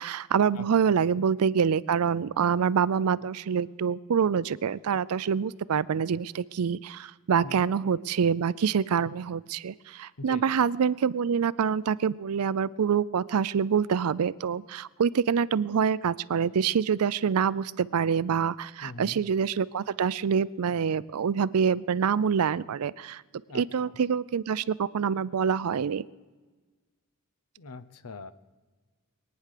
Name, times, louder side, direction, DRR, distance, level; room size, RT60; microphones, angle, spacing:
voice 1, 0.0-23.2 23.5-26.0, right 7 dB, 75° right, 20 dB, 0.4 m, -26 dB
voice 2, 18.8-19.2 23.5-23.9 27.6-28.3, left 3 dB, 90° left, 15 dB, 0.8 m, -42 dB
22.5 x 9.5 x 6.7 m, 1.3 s
head